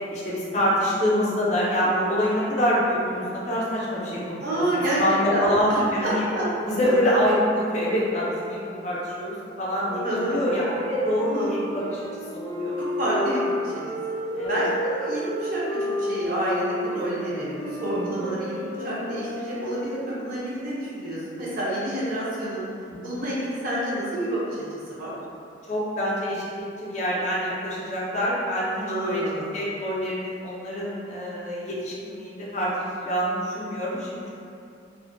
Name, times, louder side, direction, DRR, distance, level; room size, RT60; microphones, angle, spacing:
voice 1, 0.1-6.2 6.6-12.0 12.3-12.7 13.1-13.2 14.4-14.6 17.9-18.1 22.9-23.0 25.7-29.2 29.5-34.3, equal, 40° left, -6 dB, 0.4 m, -26 dB
voice 2, 4.4-6.5 6.8-6.9 10.0-10.5 11.3-11.5 13.0-13.7 14.5-22.6 23.0-24.6 24.9-25.1 28.8-29.5, right 1 dB, 50° right, -8 dB, 0.6 m, -28 dB
Wind instrument woodwind instrument, 9.8-19.9, left 1 dB, 70° right, 1.3 m, -31 dB
2.4 x 2.1 x 2.5 m, 2.5 s
head